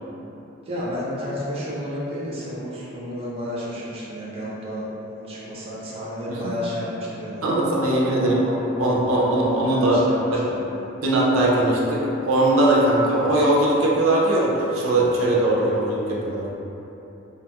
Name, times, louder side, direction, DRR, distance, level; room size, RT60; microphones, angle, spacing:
voice 1, 0.7-7.4 8.1-8.4 8.8-10.7, equal, 30° right, -8 dB, 0.5 m, -31 dB
voice 2, 7.4-8.5 8.8-10.0 10.3-10.4 11.0-16.5, right 1 dB, 85° right, -5 dB, 0.5 m, -20 dB
2.8 x 2.3 x 2.8 m, 3.0 s
head